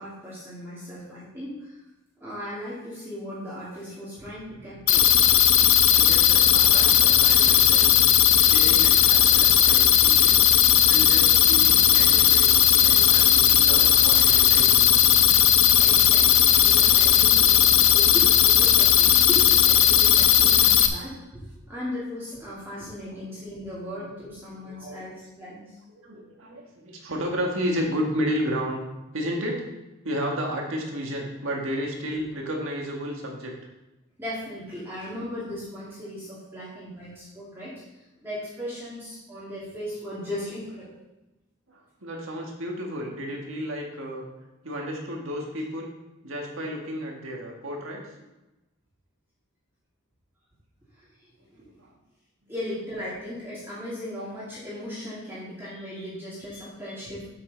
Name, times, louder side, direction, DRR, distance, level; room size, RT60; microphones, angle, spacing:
voice 1, 0.0-1.8 2.2-5.1 8.3-8.4 12.5-12.7 13.7-13.9 15.8-25.6 34.2-37.8 38.2-41.0 51.0-51.1 52.5-57.3, left 1 dB, 10° right, -9 dB, 2.2 m, -37 dB
sound 1, 4.9-20.9, left 10 dB, 65° left, 0.7 m, -17 dB
voice 2, 5.9-7.9 8.5-10.5 10.9-12.5 12.7-14.9 17.0-18.0 18.9-19.3 23.0-23.2 23.9-24.1 24.6-25.0 25.9-28.8 29.1-29.7 30.0-33.5 41.7-44.3 44.6-45.9 46.2-48.2 51.6-51.9, equal, 65° right, 0 dB, 1.8 m, -32 dB
7.7 x 7.6 x 4.0 m, 1.0 s
head